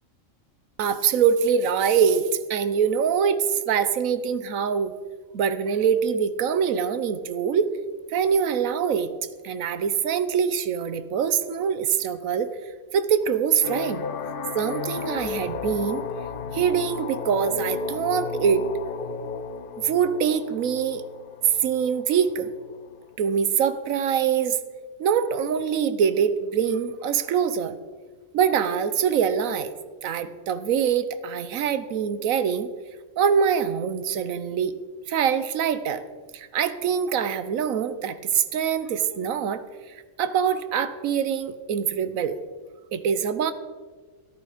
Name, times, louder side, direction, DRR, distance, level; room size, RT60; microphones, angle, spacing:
voice 1, 0.8-4.9 5.3-7.7 8.1-9.1 9.4-12.5 12.9-14.0 14.5-16.1 16.5-18.7 19.8-21.0 21.4-22.5 23.2-24.6 25.0-27.7 28.3-29.7 30.0-32.7 33.2-34.8 35.1-36.0 36.3-42.4 42.9-43.5, right 7 dB, 80° right, 12 dB, 1.2 m, -24 dB
sound 1, 13.6-23.2, left 5 dB, 50° left, 0.7 m, -34 dB
13.5 x 11.0 x 5.0 m, 1.4 s
omnidirectional pair, 1.4 m